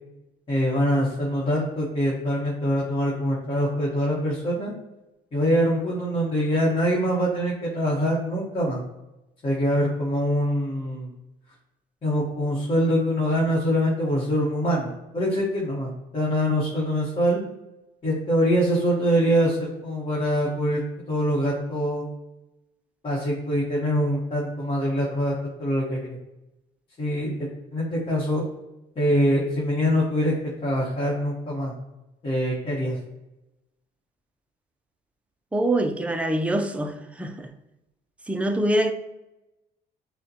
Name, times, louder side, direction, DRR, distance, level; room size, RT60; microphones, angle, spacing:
voice 1, 0.5-4.7 5.3-8.8 9.4-11.1 12.0-17.4 18.0-20.8 21.1-22.1 23.0-25.3 25.6-26.2 27.0-28.4 29.0-30.3 30.6-31.7 32.2-33.0, equal, 30° left, 1.2 m, -24 dB
voice 2, 35.5-37.5 38.3-38.9, right 1 dB, 5° right, 0.4 m, -24 dB
6.5 x 2.2 x 2.8 m
cardioid pair, 110°, 17 cm